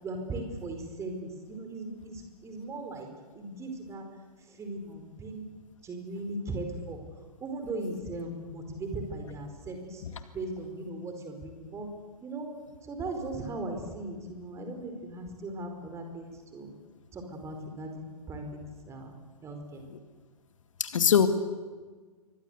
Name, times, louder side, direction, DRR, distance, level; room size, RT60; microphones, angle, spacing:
voice 1, 0.0-3.1 3.3-4.1 4.6-5.4 5.8-7.0 7.4-10.0 10.3-11.9 12.2-12.5 12.9-16.7 17.1-18.4 18.9-19.1 19.4-19.8, right 2 dB, 15° right, 4 dB, 4.9 m, -38 dB
voice 2, 20.8-21.3, left 8 dB, 55° left, 9 dB, 2.2 m, -23 dB
28.5 x 24.0 x 8.3 m, 1.4 s
figure-of-eight pair, 115°, 20 cm